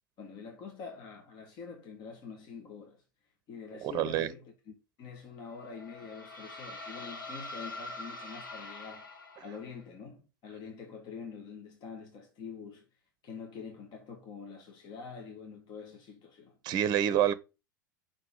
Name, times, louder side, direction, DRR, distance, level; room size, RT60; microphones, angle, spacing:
voice 1, 0.2-3.0 3.5-9.1 9.4-12.8 13.2-16.6, left 5 dB, 40° left, 1.8 m, -46 dB
voice 2, 3.8-4.3 16.6-17.3, right 10 dB, 40° right, 0.7 m, -27 dB
sound 1, 5.5-9.8, left 2 dB, 80° left, 1.4 m, -44 dB
5.6 x 4.7 x 5.3 m
figure-of-eight pair, 85°, 11 cm